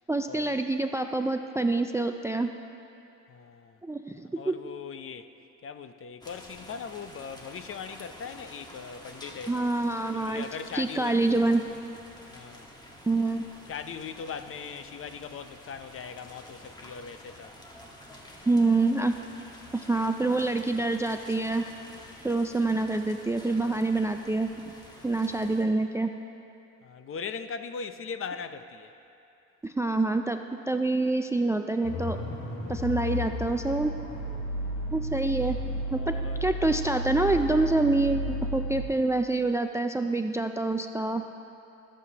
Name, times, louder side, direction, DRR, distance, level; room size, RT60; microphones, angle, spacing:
voice 1, 0.1-2.5 3.8-4.6 9.5-10.4 10.7-11.6 13.1-13.4 18.5-19.1 19.7-21.6 22.2-24.5 25.0-26.1 29.6-32.2 32.7-33.9 34.9-35.6 35.9-36.1 36.4-41.2, right 2 dB, 10° right, 7 dB, 0.3 m, -26 dB
voice 2, 3.3-3.8 4.1-5.3 5.6-9.7 10.1-11.6 12.3-12.7 13.7-17.5 26.8-28.9 34.6-34.9 35.9-36.4, left 6 dB, 45° left, 10 dB, 0.6 m, -40 dB
sound 1, 6.2-25.6, left 1 dB, 15° left, 1.4 m, -49 dB
sound 2, 31.8-38.8, equal, 80° left, 1.7 m, -32 dB
22.5 x 7.6 x 2.9 m, 2.7 s
cardioid pair, 90°, 30 cm